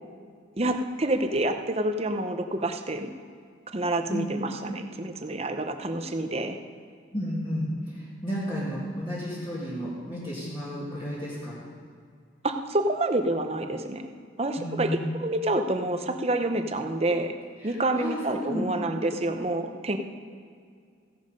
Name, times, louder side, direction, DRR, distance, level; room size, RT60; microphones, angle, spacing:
voice 1, 0.6-3.1 3.7-6.6 12.4-14.1 14.4-17.3 17.6-20.0, right 1 dB, 30° right, 6 dB, 0.8 m, -28 dB
voice 2, 7.1-7.7 7.9-11.6 14.6-15.0 17.6-18.9, equal, 25° left, -9 dB, 2.5 m, -32 dB
15.5 x 10.5 x 5.3 m, 2.2 s
head